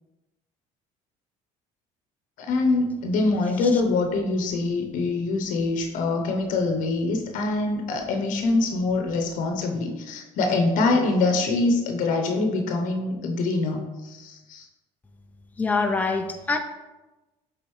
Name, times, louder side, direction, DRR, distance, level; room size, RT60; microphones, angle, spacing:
voice 1, 2.4-14.7, left 3 dB, 70° left, 4 dB, 0.8 m, -24 dB
voice 2, 15.6-16.6, left 4 dB, 10° left, 4 dB, 0.5 m, -25 dB
8.0 x 3.8 x 3.1 m, 1.1 s
cardioid pair, 105°, 14 cm